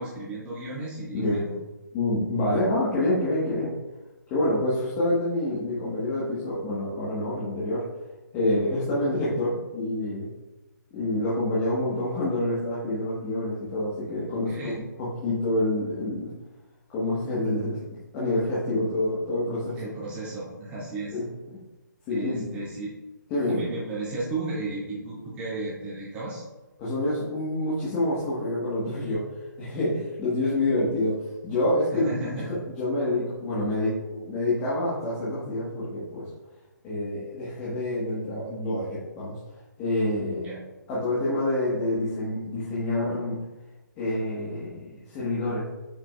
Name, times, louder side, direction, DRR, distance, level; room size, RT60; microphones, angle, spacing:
voice 1, 0.0-1.5 14.3-14.8 19.8-21.2 22.1-22.9 23.5-26.4 31.9-32.6 40.4-40.6, right 2 dB, 10° right, -8 dB, 2.5 m, -34 dB
voice 2, 1.1-1.5 1.9-3.7 4.3-7.8 8.3-10.3 10.9-16.3 16.9-17.8 18.1-19.9 21.1-21.3 22.1-22.5 23.3-23.6 26.8-29.3 29.6-32.1 32.4-36.3 36.8-39.4 39.8-40.5 40.9-43.4 44.0-45.7, left 1 dB, 15° left, -9 dB, 1.5 m, -27 dB
9.8 x 6.3 x 2.5 m, 1.1 s
hypercardioid pair, 170°, 10 cm